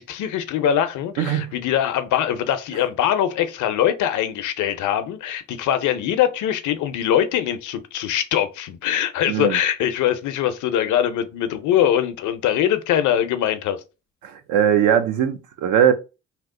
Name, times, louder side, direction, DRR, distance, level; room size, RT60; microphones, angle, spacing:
voice 1, 0.0-13.8, left 10 dB, 75° left, 0.5 m, -22 dB
voice 2, 1.2-1.5 9.3-9.6 14.2-15.9, right 9 dB, 80° right, 0.6 m, -20 dB
2.9 x 2.0 x 3.6 m
cardioid pair, 90°, 30 cm